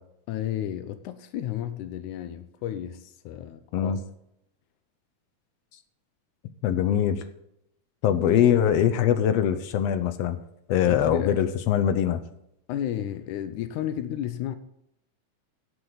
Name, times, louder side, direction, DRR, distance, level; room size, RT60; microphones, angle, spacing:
voice 1, 0.3-4.0 10.9-11.4 12.7-14.6, left 11 dB, 90° left, 2.2 m, -32 dB
voice 2, 6.6-7.2 8.0-10.4 10.7-12.2, left 9 dB, 70° left, 1.6 m, -22 dB
17.0 x 7.9 x 4.0 m
omnidirectional pair, 3.4 m